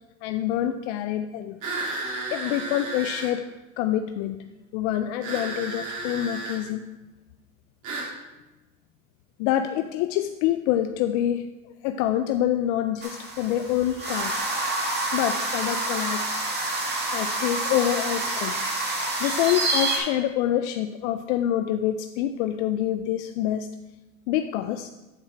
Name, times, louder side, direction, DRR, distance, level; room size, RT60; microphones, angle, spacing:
voice 1, 0.2-1.6 2.3-3.4 3.8-4.4 4.7-6.8 9.4-11.5 11.8-14.4 15.1-16.2 17.1-18.6 19.2-23.7 24.3-24.9, left 11 dB, 65° left, 8 dB, 0.5 m, -26 dB
sound 1, 1.6-3.3 5.2-6.6 7.8-8.1, right 3 dB, 50° right, 2.3 m, -33 dB
sound 2, 13.0-20.0, right 2 dB, 30° right, 2.0 m, -28 dB
8.9 x 4.3 x 4.8 m, 1.1 s
supercardioid pair, 95°, 37 cm